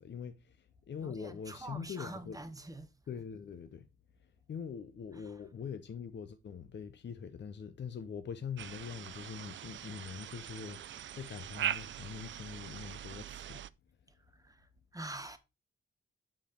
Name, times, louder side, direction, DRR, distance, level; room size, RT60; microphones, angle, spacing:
voice 1, 0.0-2.4 3.1-3.9 4.5-13.6, left 7 dB, 60° left, 0.7 m, -43 dB
voice 2, 1.0-2.9 5.1-5.4 14.3-15.4, right 2 dB, 15° right, 1.2 m, -46 dB
sound 1, 8.6-13.7, right 10 dB, 70° right, 0.4 m, -41 dB
7.3 x 5.2 x 4.3 m
cardioid pair, 85°, 21 cm